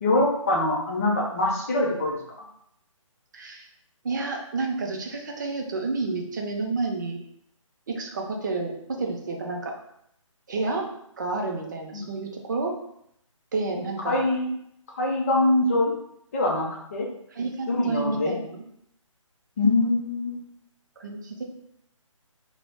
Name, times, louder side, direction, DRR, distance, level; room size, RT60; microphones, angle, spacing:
voice 1, 0.0-2.2 11.9-12.1 14.1-14.5 15.0-15.9 16.3-17.1 17.7-18.3 19.6-20.4, left 2 dB, 25° left, -2 dB, 0.5 m, -23 dB
voice 2, 3.3-3.7 4.0-7.2 7.9-9.7 10.5-10.9 11.2-12.8 13.5-14.2 17.3-18.6 21.0-21.4, right 3 dB, 35° right, 2 dB, 0.4 m, -30 dB
2.0 x 2.0 x 3.2 m, 0.75 s
figure-of-eight pair, 150°, 17 cm